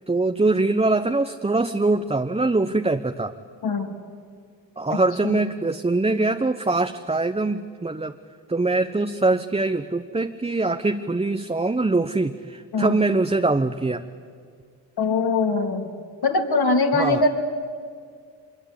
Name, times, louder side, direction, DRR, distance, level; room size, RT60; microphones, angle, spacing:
voice 1, 0.1-3.3 4.8-8.1 8.5-14.1 16.9-17.2, right 2 dB, 15° right, 7 dB, 1.0 m, -23 dB
voice 2, 3.6-3.9 4.9-5.4 12.7-13.0 15.0-15.9 16.2-17.3, left 3 dB, 55° left, 3 dB, 3.2 m, -22 dB
25.0 x 22.0 x 8.5 m, 2.1 s
supercardioid pair, 50°, 46 cm